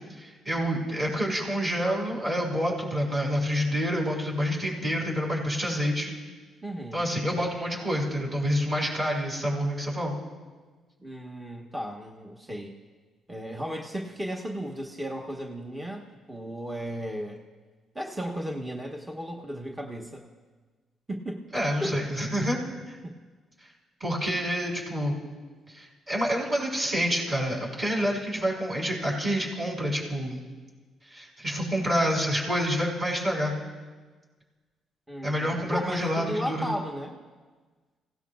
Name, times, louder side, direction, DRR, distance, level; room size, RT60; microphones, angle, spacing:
voice 1, 0.2-6.2 6.9-10.1 21.5-22.6 24.0-25.2 25.7-30.4 31.1-33.5 35.2-36.7, equal, 30° right, -2 dB, 6.2 m, -28 dB
voice 2, 6.6-7.1 11.0-12.7 13.3-17.4 17.9-20.3 21.1-21.5 21.8-22.0 23.0-23.1 35.1-37.2, equal, 15° right, 1 dB, 1.3 m, -35 dB
29.5 x 17.0 x 2.4 m, 1.4 s
cardioid pair, 90°, 0 cm